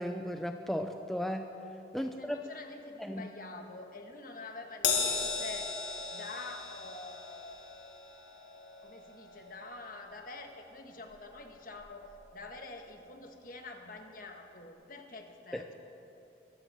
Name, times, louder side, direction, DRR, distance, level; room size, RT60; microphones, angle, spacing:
voice 1, 0.0-1.5 1.9-2.4 3.0-3.3 15.5-15.6, equal, ahead, 5 dB, 0.4 m, -35 dB
voice 2, 2.0-5.7 6.1-7.6 8.8-15.7, left 2 dB, 50° left, 4 dB, 1.4 m, -47 dB
Crash cymbal, 4.8-11.5 11.8-12.0 13.1-13.2, left 5 dB, 80° left, 2.2 m, -37 dB
23.0 x 8.0 x 7.7 m, 2.9 s
head